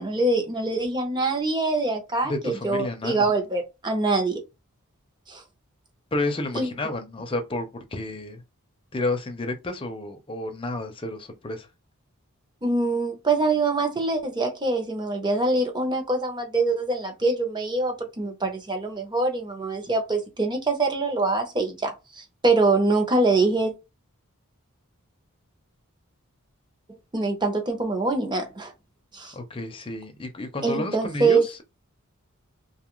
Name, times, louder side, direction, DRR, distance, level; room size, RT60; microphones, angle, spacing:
voice 1, 0.0-4.4 5.3-5.4 6.5-6.7 12.6-23.7 27.1-28.7 29.1-29.3 30.6-31.4, right 3 dB, 20° right, 0.7 m, -24 dB
voice 2, 2.2-3.3 6.1-8.4 8.9-11.7 29.3-31.6, left 2 dB, 25° left, 0.6 m, -31 dB
2.8 x 2.4 x 3.0 m
head